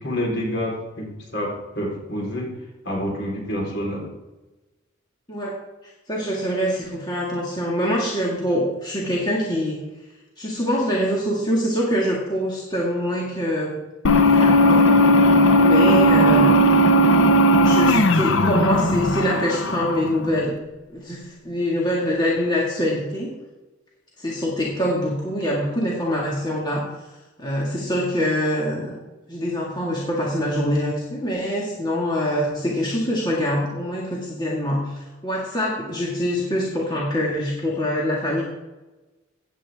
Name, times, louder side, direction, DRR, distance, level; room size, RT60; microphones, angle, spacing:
voice 1, 0.0-2.5 2.8-4.1, equal, 60° left, -2 dB, 4.2 m, -28 dB
voice 2, 6.1-9.8 10.4-13.8 14.3-15.0 15.5-16.5 17.6-20.6 20.9-23.3 24.2-27.1 27.4-28.9 29.3-38.4, equal, 20° left, -4 dB, 2.0 m, -24 dB
sound 1, 14.0-20.4, equal, 75° left, 0.8 m, -16 dB
16.0 x 8.9 x 3.6 m, 1.1 s
head